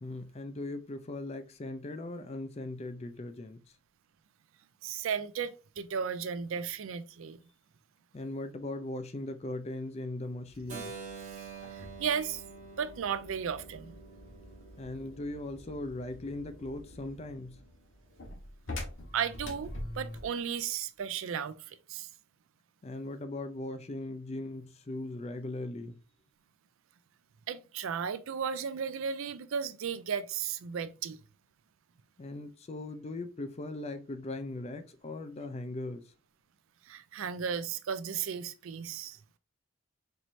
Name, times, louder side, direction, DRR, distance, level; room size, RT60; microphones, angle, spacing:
voice 1, 0.0-3.6 8.1-10.9 14.8-17.6 22.8-26.0 32.2-36.1, left 2 dB, 30° left, 0.4 m, -39 dB
voice 2, 4.8-7.4 11.3-11.4 11.7-12.4 12.8-14.0 19.1-22.1 27.5-31.2 36.9-39.2, right 7 dB, 70° right, 0.4 m, -35 dB
sound 1, 10.5-20.4, left 1 dB, 65° left, 1.2 m, -46 dB
Keyboard (musical), 10.7-16.5, right 5 dB, 35° right, 0.8 m, -48 dB
4.5 x 3.1 x 2.6 m
head